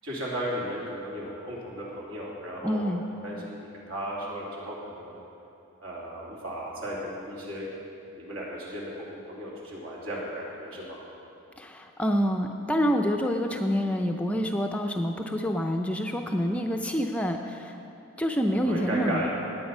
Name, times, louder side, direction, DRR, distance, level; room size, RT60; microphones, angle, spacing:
voice 1, 0.0-2.8 3.2-5.2 5.8-7.7 8.1-11.0 18.5-19.3, equal, 70° right, -5 dB, 3.2 m, -35 dB
voice 2, 2.6-3.0 11.6-17.8 18.2-19.3, equal, 5° left, 3 dB, 0.5 m, -27 dB
19.0 x 8.7 x 5.4 m, 2.9 s
head